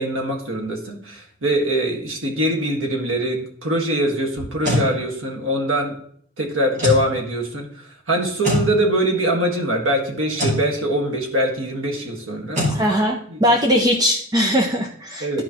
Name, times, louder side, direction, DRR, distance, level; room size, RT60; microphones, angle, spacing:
voice 1, 0.0-5.9 6.4-12.6 13.3-13.4 15.2-15.4, right 1 dB, 90° right, 2 dB, 1.7 m, -23 dB
sound 1, 4.4-4.9 6.7-7.1 8.4-8.7 10.3-10.6 12.5-12.8, left 1 dB, 40° right, 2.6 m, -21 dB
voice 2, 12.7-15.4, equal, 20° right, 1 dB, 0.6 m, -20 dB
12.0 x 5.1 x 2.9 m, 0.62 s
head